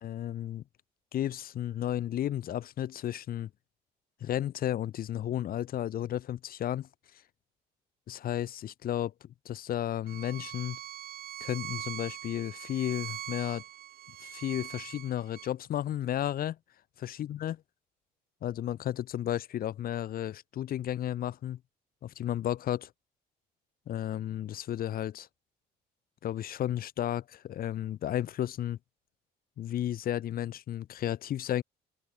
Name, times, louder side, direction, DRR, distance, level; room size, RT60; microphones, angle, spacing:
voice 1, 0.0-0.6 1.1-3.5 4.2-6.9 8.1-10.8 11.4-13.6 14.2-16.6 17.0-17.6 18.4-21.6 22.0-22.9 23.9-25.3 26.2-28.8 29.6-31.6, left 11 dB, 60° left, 2.9 m, -33 dB
Bowed string instrument, 10.1-15.5, right 12 dB, 65° right, 2.7 m, -42 dB
open air
cardioid pair, 110°, 17 cm